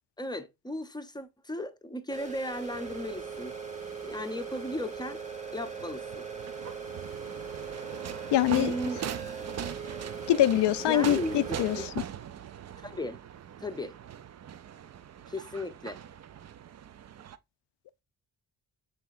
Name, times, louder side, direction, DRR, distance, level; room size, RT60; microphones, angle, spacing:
voice 1, 0.2-3.6 4.0-5.2 5.5-6.3 8.4-9.0 9.4-9.8 10.8-11.6 12.8-13.2 13.6-13.9 15.3-16.0, left 1 dB, 10° left, 0.6 m, -36 dB
sound 1, 2.1-11.9, right 6 dB, 15° right, 1.3 m, -40 dB
sound 2, 2.7-17.4, right 9 dB, 35° right, 0.4 m, -42 dB
voice 2, 8.3-8.7 10.3-11.9, left 12 dB, 60° left, 0.5 m, -24 dB
5.7 x 3.4 x 2.5 m
supercardioid pair, 50°, 49 cm